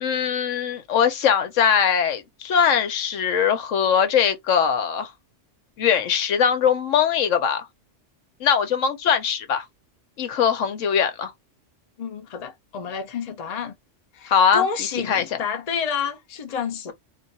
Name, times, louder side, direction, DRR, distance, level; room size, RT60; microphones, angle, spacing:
voice 1, 0.0-5.1 5.8-7.7 8.4-9.7 10.2-11.3 14.3-14.7 15.1-15.3, left 7 dB, 90° left, 1.1 m, -21 dB
voice 2, 12.0-13.8 14.1-16.9, left 7 dB, 40° left, 0.7 m, -29 dB
2.5 x 2.4 x 4.0 m
omnidirectional pair, 1.3 m